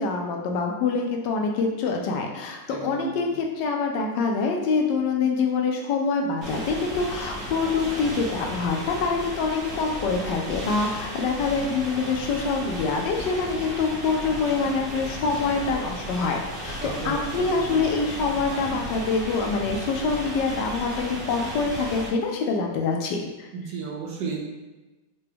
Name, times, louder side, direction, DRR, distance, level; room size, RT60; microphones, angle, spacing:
voice 1, 0.0-23.5, left 4 dB, 85° left, 1 dB, 1.2 m, -25 dB
voice 2, 2.7-3.4 16.8-17.8 23.5-24.4, right 5 dB, 80° right, -1 dB, 1.3 m, -34 dB
sound 1, 6.4-22.1, equal, 40° right, 1.0 m, -35 dB
3.9 x 2.2 x 3.3 m, 1.1 s
omnidirectional pair, 1.9 m